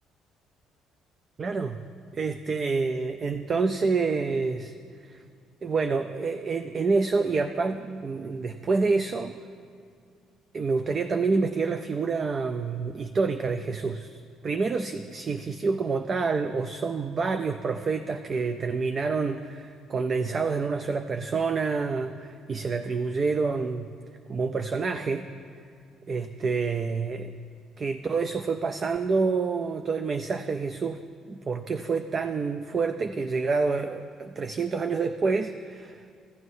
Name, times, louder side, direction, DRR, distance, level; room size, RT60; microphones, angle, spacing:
voice 1, 1.4-1.8 2.1-4.7 5.0-5.2 5.6-9.4 10.5-23.9 24.3-25.3 26.1-27.3 27.8-31.0 31.3-36.1, right 4 dB, 30° right, 8 dB, 0.3 m, -28 dB
15.5 x 9.5 x 2.7 m, 2.4 s
cardioid pair, 135°, 0 cm